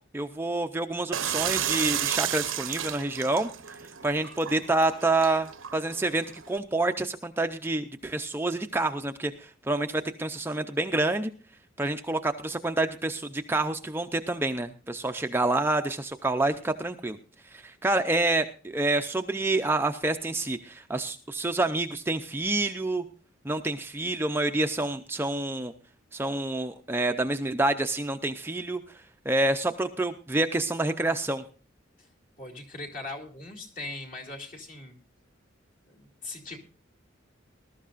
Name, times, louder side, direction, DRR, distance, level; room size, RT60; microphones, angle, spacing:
voice 1, 0.1-3.5 4.0-11.3 11.8-17.2 17.5-23.0 23.4-25.7 26.1-28.8 29.3-31.4, right 2 dB, 10° right, 6 dB, 0.5 m, -28 dB
sound 1, 1.1-6.6, right 10 dB, 90° right, 0.8 m, -32 dB
voice 2, 32.4-35.0 35.9-36.6, left 2 dB, 45° left, 2 dB, 2.4 m, -40 dB
20.5 x 12.5 x 2.5 m, 0.37 s
head